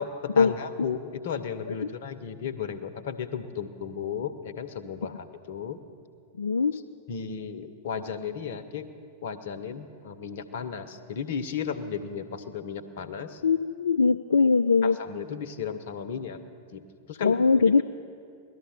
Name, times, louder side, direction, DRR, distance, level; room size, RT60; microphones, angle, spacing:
voice 1, 0.0-5.8 6.7-6.8 7.1-8.9 9.2-13.4 14.8-16.4 16.7-17.4, left 7 dB, 60° left, 11 dB, 1.0 m, -34 dB
voice 2, 6.4-6.8 13.4-15.0 17.2-17.8, left 5 dB, 75° left, 10 dB, 0.3 m, -21 dB
18.5 x 13.0 x 5.9 m, 2.3 s
figure-of-eight pair, 95°, 0 cm